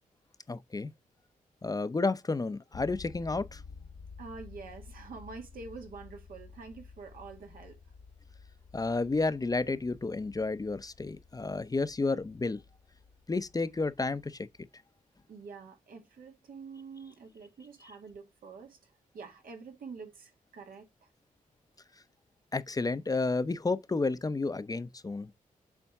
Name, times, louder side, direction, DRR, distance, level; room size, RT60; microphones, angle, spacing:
voice 1, 0.5-0.9 1.6-3.6 8.7-12.6 13.3-14.4 22.5-25.3, left 3 dB, 25° left, 0.6 m, -31 dB
sound 1, 2.7-14.7, left 5 dB, 75° left, 0.9 m, -52 dB
voice 2, 4.2-7.8 15.3-20.9, right 4 dB, 80° right, 1.9 m, -47 dB
7.1 x 4.3 x 3.6 m
cardioid pair, 75°, 15 cm